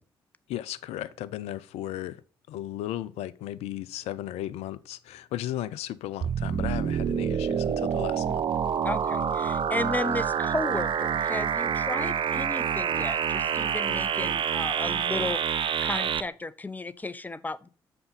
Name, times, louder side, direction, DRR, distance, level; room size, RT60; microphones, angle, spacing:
voice 1, 0.5-2.2 2.5-8.5, left 13 dB, 60° left, 0.5 m, -35 dB
sound 1, 6.2-16.2, right 8 dB, 45° right, 0.6 m, -27 dB
voice 2, 8.8-15.4 15.8-17.7, left 2 dB, 15° left, 0.7 m, -34 dB
6.8 x 5.4 x 5.7 m
figure-of-eight pair, 40°, 12 cm